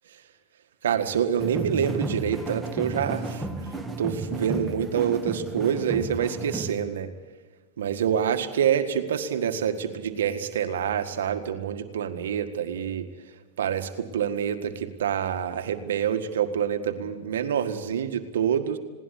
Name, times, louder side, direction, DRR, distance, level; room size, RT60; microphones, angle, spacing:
voice 1, 0.8-3.4 4.0-7.1 7.8-13.1 13.6-18.8, right 8 dB, 80° right, 7 dB, 1.7 m, -26 dB
sound 1, 1.4-6.7, right 2 dB, 10° right, 2.2 m, -33 dB
20.5 x 18.0 x 8.5 m, 1.3 s
hypercardioid pair, 110°, 0 cm